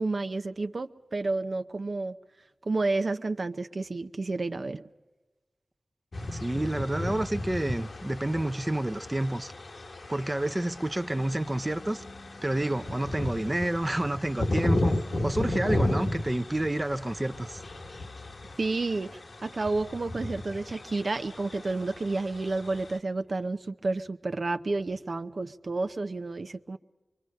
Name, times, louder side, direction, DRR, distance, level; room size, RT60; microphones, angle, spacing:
voice 1, 0.0-2.2 2.7-4.8 18.6-26.8, right 3 dB, 60° right, 0.7 m, -30 dB
sound 1, 6.1-23.0, left 1 dB, 65° left, 1.3 m, -34 dB
voice 2, 6.3-9.5 10.1-12.0 12.4-14.9 15.2-17.6, right 1 dB, 25° right, 0.8 m, -29 dB
25.0 x 24.0 x 6.5 m
cardioid pair, 50°, 0 cm